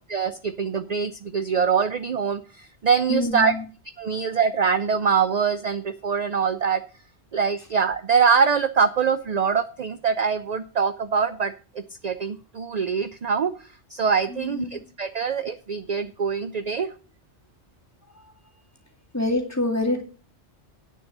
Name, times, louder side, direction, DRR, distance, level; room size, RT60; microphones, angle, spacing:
voice 1, 0.1-3.5 4.0-6.8 7.3-11.5 12.0-16.9, right 6 dB, 45° right, 11 dB, 0.6 m, -24 dB
voice 2, 3.1-3.6 14.3-14.8 18.1-18.2 19.1-20.0, left 2 dB, 15° left, 0 dB, 2.2 m, -26 dB
9.0 x 6.6 x 6.7 m, 0.37 s
omnidirectional pair, 1.2 m